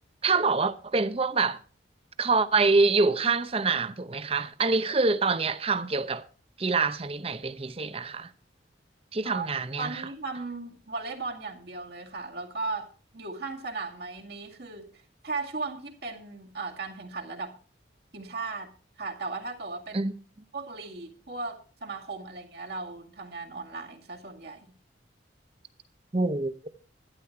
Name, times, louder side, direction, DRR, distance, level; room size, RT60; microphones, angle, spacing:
voice 1, 0.2-1.6 2.2-6.3 6.6-8.3 9.1-10.0 19.9-20.1 26.1-26.5, right 4 dB, 30° right, 0.7 m, -25 dB
voice 2, 9.8-17.6 18.1-18.7 19.0-20.1 20.5-24.7, right 3 dB, 60° right, 2.1 m, -37 dB
12.0 x 11.0 x 4.5 m
head